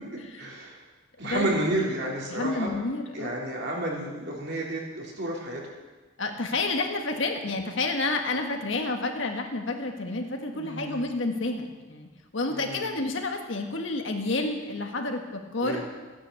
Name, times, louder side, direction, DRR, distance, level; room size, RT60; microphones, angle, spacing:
voice 1, 0.4-0.8 1.2-2.7 3.1-5.6 10.5-11.1 12.5-13.0 15.6-15.8, right 1 dB, 50° right, -2 dB, 3.6 m, -31 dB
voice 2, 1.2-1.8 2.3-3.4 6.2-12.1 12.3-15.9, left 2 dB, 60° left, 4 dB, 1.7 m, -30 dB
15.0 x 10.0 x 8.2 m, 1.3 s
head